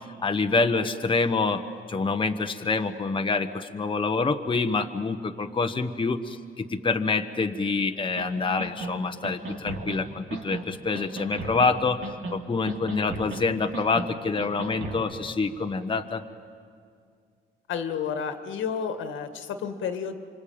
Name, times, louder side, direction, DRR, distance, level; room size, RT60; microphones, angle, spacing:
voice 1, 0.2-1.6 1.9-12.0 12.3-16.2, left 4 dB, 25° left, 5 dB, 1.2 m, -26 dB
sound 1, 8.2-8.3 8.6-8.9 9.2-10.0 10.3-10.6 10.9-11.7 12.0-12.4 12.7-13.4 13.7-14.1 14.4-15.0, right 2 dB, 80° right, 3.2 m, -35 dB
voice 2, 17.7-20.2, left 7 dB, 75° left, 7 dB, 2.0 m, -31 dB
26.5 x 25.5 x 8.8 m, 2.2 s
cardioid pair, 90°, 20 cm